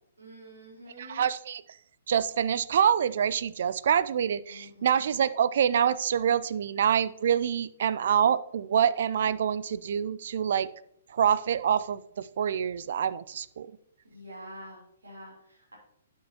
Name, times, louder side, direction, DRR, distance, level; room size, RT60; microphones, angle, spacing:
voice 1, 0.2-1.3 4.5-5.0 14.1-15.7, equal, 80° right, 3.2 m, -47 dB
voice 2, 1.0-1.6 2.1-10.7 11.1-13.7, right 8 dB, 55° right, 0.4 m, -26 dB
10.5 x 6.3 x 2.8 m
figure-of-eight pair, 120°, 0 cm